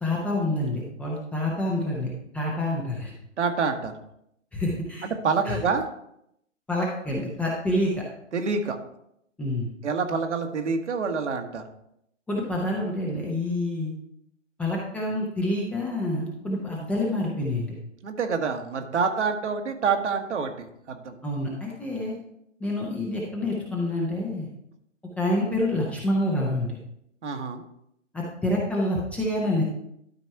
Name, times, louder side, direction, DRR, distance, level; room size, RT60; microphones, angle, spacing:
voice 1, 0.0-3.1 4.5-5.1 5.5-5.6 6.7-8.0 9.4-9.7 12.3-13.9 14.6-17.7 21.2-22.2 22.6-24.5 25.2-26.8 28.1-29.6, left 1 dB, 5° left, -3 dB, 0.5 m, -27 dB
voice 2, 3.4-3.9 5.0-5.9 8.3-8.8 9.8-11.6 18.0-21.2 27.2-27.6, right 5 dB, 65° right, 5 dB, 1.5 m, -27 dB
12.5 x 4.2 x 4.6 m, 0.76 s
hypercardioid pair, 135°, 37 cm